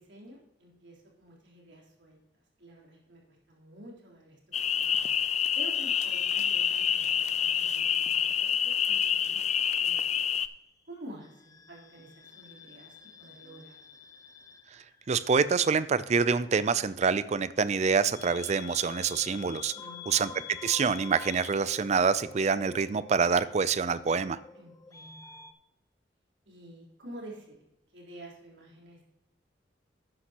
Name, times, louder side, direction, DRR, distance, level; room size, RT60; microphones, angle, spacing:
voice 1, 0.0-2.2 2.6-5.0 5.6-9.4 9.8-10.2 10.9-14.0 19.7-20.4 24.5-25.5 26.5-29.1, right 1 dB, 80° right, -3 dB, 3.5 m, -49 dB
sound 1, 4.5-10.5, left 8 dB, 40° left, 0.4 m, -27 dB
sound 2, 5.7-8.6 8.8-10.0 11.2-25.5, left 6 dB, 20° left, 0.8 m, -49 dB
voice 2, 15.1-19.7 20.1-20.3 20.6-24.4, right 5 dB, 40° right, 16 dB, 0.4 m, -26 dB
12.0 x 9.8 x 2.9 m, 0.88 s
head